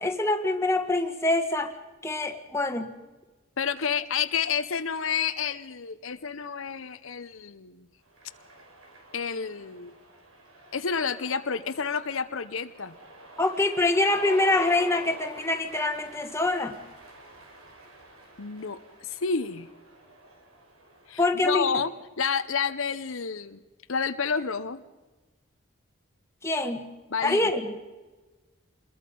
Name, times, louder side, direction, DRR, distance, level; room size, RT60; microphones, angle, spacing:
voice 1, 0.0-1.7 2.0-2.9 13.4-16.8 21.2-21.8 26.4-26.9 27.2-27.6, left 2 dB, 15° left, 5 dB, 1.5 m, -25 dB
voice 2, 3.6-7.9 9.1-9.9 10.7-12.9 18.4-19.7 21.1-21.9 22.2-23.6 23.9-24.8 27.1-27.5, left 6 dB, 75° left, 11 dB, 0.8 m, -30 dB
Cheering, 8.1-21.5, right 1 dB, 85° right, 4.4 m, -47 dB
26.5 x 21.5 x 5.4 m, 1.2 s
head